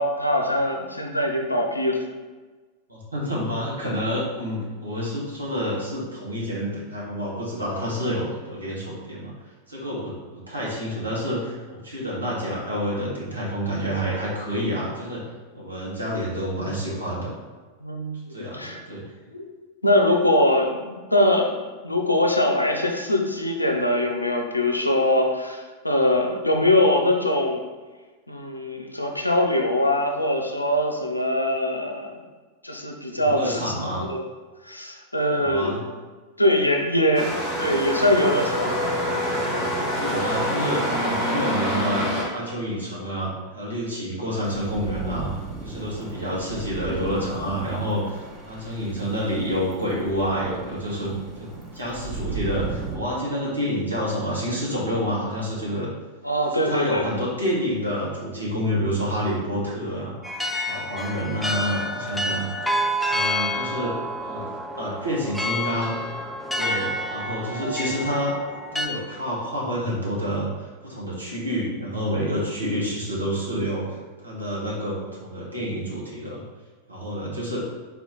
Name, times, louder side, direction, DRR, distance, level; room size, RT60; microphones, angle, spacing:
voice 1, 0.0-2.0 17.8-18.8 19.3-19.4 19.8-21.6 21.8-27.6 28.3-32.2 32.6-34.3 34.6-35.8 36.4-37.3 37.6-38.8 56.2-57.1 67.6-67.8, left 1 dB, 85° left, 2 dB, 0.5 m, -22 dB
voice 2, 2.9-9.3 9.7-15.2 15.5-17.3 18.3-19.0 33.1-34.1 35.4-35.8 39.9-45.3 45.6-55.9 56.4-62.5 63.1-63.9 64.2-64.5 64.8-65.9 66.5-68.3 68.7-74.0 74.2-76.4 76.9-77.6, equal, 80° right, -6 dB, 1.3 m, -28 dB
sound 1, 37.1-42.2, equal, 45° right, 1.2 m, -26 dB
sound 2, 44.4-53.0, right 4 dB, 20° right, 0.7 m, -37 dB
sound 3, 60.2-68.9, equal, ahead, 0.4 m, -28 dB
4.1 x 2.9 x 3.9 m, 1.3 s
figure-of-eight pair, 90°, 0 cm